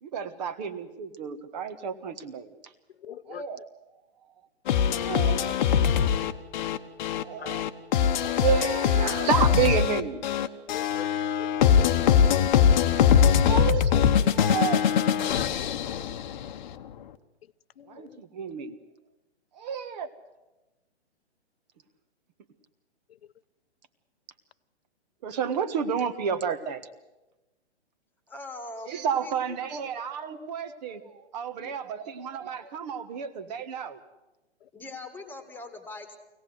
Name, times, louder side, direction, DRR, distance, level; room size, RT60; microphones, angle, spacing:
voice 1, 0.0-2.7 3.3-3.7 4.9-5.6 7.1-7.7 8.2-10.3 13.4-14.8 17.8-18.8 19.5-20.1 25.2-26.9 28.9-34.0, right 7 dB, 40° right, 11 dB, 1.5 m, -31 dB
voice 2, 3.0-3.4 7.4-7.5 10.7-11.1 11.4-12.0 13.3-13.5 14.2-14.3 15.3-15.8 17.8-18.2 31.6-31.7, left 10 dB, 60° left, 14 dB, 0.9 m, -43 dB
sound 1, 4.7-16.6, left 8 dB, 40° left, 1.1 m, -22 dB
voice 3, 28.3-29.6 29.8-30.0 34.7-36.2, left 2 dB, 5° left, 7 dB, 1.8 m, -42 dB
24.5 x 17.5 x 7.9 m, 1.0 s
hypercardioid pair, 145°, 34 cm